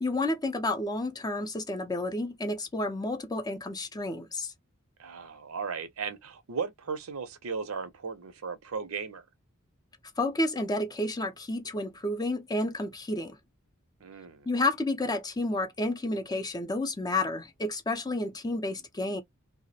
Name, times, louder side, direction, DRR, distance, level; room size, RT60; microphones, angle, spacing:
voice 1, 0.0-4.5 10.2-13.4 14.5-19.2, left 2 dB, 20° left, 0.4 m, -30 dB
voice 2, 5.0-9.2 14.0-14.5, right 5 dB, 90° right, 0.6 m, -36 dB
2.3 x 2.0 x 2.6 m
head